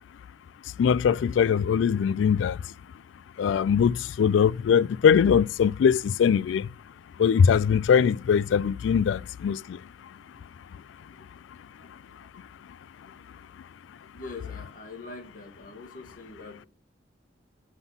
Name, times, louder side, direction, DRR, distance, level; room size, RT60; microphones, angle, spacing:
voice 1, 0.8-2.6 3.4-6.6 7.2-9.6, left 7 dB, 70° left, 0.3 m, -21 dB
voice 2, 12.1-12.6 14.1-16.7, left 3 dB, 45° left, 1.9 m, -43 dB
7.0 x 6.0 x 5.4 m
head